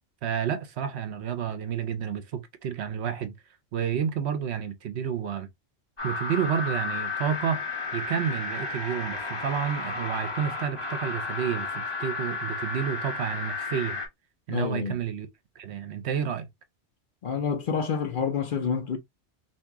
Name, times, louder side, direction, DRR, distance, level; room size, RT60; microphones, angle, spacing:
voice 1, 0.2-3.3 3.7-5.5 6.0-7.6 7.9-14.0 14.5-15.3 15.6-16.5, right 8 dB, 70° right, 0.9 m, -30 dB
sound 1, 6.0-14.1, left 3 dB, 25° left, 1.1 m, -33 dB
voice 2, 14.5-15.0 17.2-19.0, left 6 dB, 55° left, 0.7 m, -28 dB
2.8 x 2.6 x 3.4 m
omnidirectional pair, 1.2 m